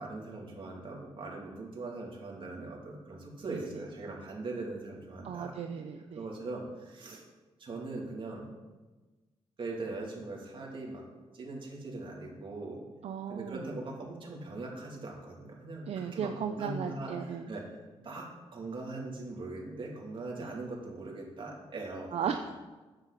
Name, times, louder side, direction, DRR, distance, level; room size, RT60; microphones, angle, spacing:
voice 1, 0.0-5.5 6.1-7.2 7.6-8.5 9.6-11.0 11.3-12.8 13.3-17.6 18.0-22.3, right 2 dB, 50° right, -3 dB, 2.8 m, -41 dB
voice 2, 5.2-6.2 13.0-13.7 15.9-17.5 20.4-20.5 22.1-22.5, right 7 dB, 70° right, 5 dB, 0.6 m, -36 dB
9.5 x 8.2 x 4.1 m, 1.2 s
cardioid pair, 105°, 11 cm